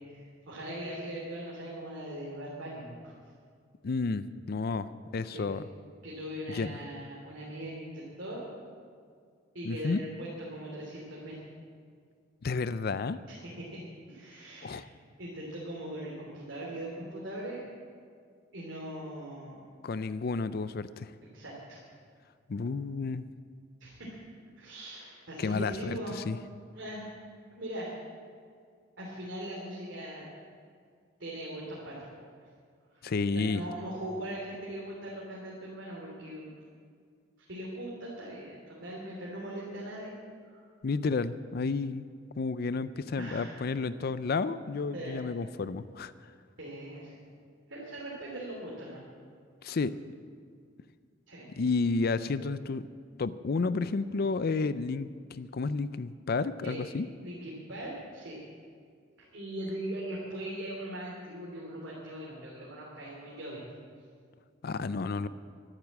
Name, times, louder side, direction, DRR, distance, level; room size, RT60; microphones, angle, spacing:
voice 1, 0.1-3.1 5.3-5.5 6.0-8.5 9.5-11.4 13.3-14.8 15.2-17.6 18.5-19.6 21.3-21.8 22.5-22.6 23.8-24.2 24.5-26.2 26.7-27.1 27.5-27.9 29.0-30.3 31.2-32.2 32.9-33.1 33.3-36.5 37.5-40.1 40.4-40.6 43.2-43.6 44.9-45.2 46.6-47.3 47.7-49.0 49.7-49.8 51.3-51.5 56.6-58.4 59.1-63.6, right 1 dB, 80° right, -5 dB, 3.2 m, -40 dB
voice 2, 3.8-5.6 6.5-6.8 9.6-10.0 12.4-13.2 14.6-14.9 19.8-21.1 22.5-23.3 25.4-26.4 33.0-33.6 40.8-42.1 42.4-46.1 49.6-49.9 51.6-52.9 53.2-57.1 64.6-65.3, left 4 dB, 55° left, 14 dB, 0.5 m, -31 dB
13.0 x 12.0 x 7.4 m, 2.1 s
head